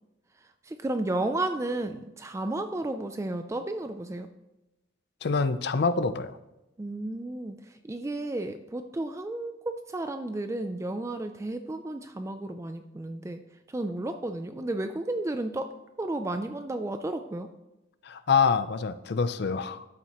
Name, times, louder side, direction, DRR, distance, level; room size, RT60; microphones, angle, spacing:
voice 1, 0.4-4.3 6.8-13.4 13.7-15.7 16.0-17.5, right 2 dB, 15° right, 8 dB, 0.3 m, -33 dB
voice 2, 5.2-6.4 18.0-19.8, left 5 dB, 60° left, 12 dB, 0.5 m, -26 dB
13.0 x 7.2 x 3.0 m, 0.97 s
head